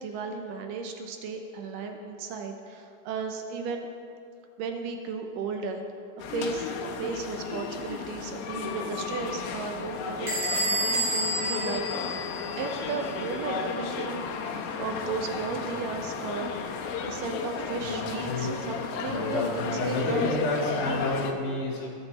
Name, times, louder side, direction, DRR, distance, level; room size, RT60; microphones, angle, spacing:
voice 1, 0.0-3.9 4.6-5.8 6.2-12.1 12.6-16.6 17.0-20.3, right 5 dB, 75° right, 4 dB, 2.3 m, -35 dB
sound 1, 6.2-21.3, left 6 dB, 85° left, 2.8 m, -34 dB
Bell / Squeak, 10.3-12.8, right 1 dB, 30° right, 3.8 m, -29 dB
voice 2, 17.8-18.6 19.1-21.9, left 2 dB, 60° left, -3 dB, 4.0 m, -30 dB
21.5 x 9.0 x 4.1 m, 2.4 s
omnidirectional pair, 4.2 m